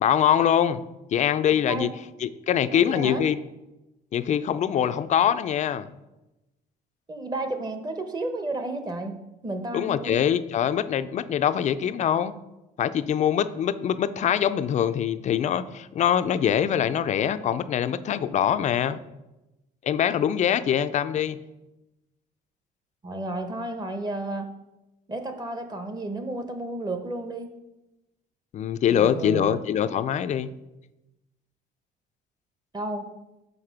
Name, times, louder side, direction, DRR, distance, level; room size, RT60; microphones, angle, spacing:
voice 1, 0.0-0.8 1.1-1.9 2.2-3.4 4.1-5.9 9.7-12.3 12.8-19.0 19.8-21.4 28.5-30.5, left 9 dB, 45° left, 12 dB, 0.4 m, -23 dB
voice 2, 2.7-3.2 7.1-9.1 9.4-10.2 23.0-24.5 25.1-27.5 28.9-29.6 32.7-33.1, right 2 dB, 25° right, 7 dB, 0.9 m, -32 dB
6.7 x 4.2 x 5.8 m, 0.98 s
cardioid pair, 110°, 17 cm